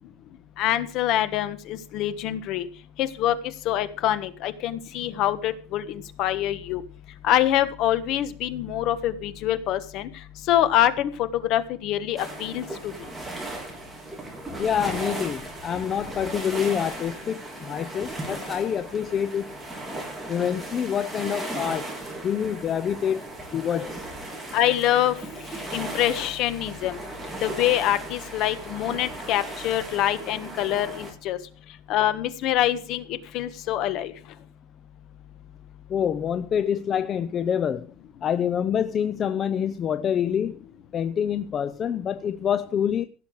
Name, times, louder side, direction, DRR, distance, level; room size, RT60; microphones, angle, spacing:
voice 1, 0.6-2.6 3.0-3.3 3.6-6.8 7.2-10.1 10.5-12.9 24.5-25.1 25.7-27.0 27.4-31.4 31.9-33.0 33.3-34.1, left 12 dB, 45° left, 1.4 m, -25 dB
sound 1, 12.2-31.1, right 2 dB, 5° right, 3.9 m, -37 dB
voice 2, 14.6-19.4 20.3-21.9 22.2-24.1 35.9-37.9 38.2-40.6 40.9-43.0, left 8 dB, 25° left, 0.6 m, -26 dB
17.0 x 7.0 x 6.5 m
supercardioid pair, 160°, 0 cm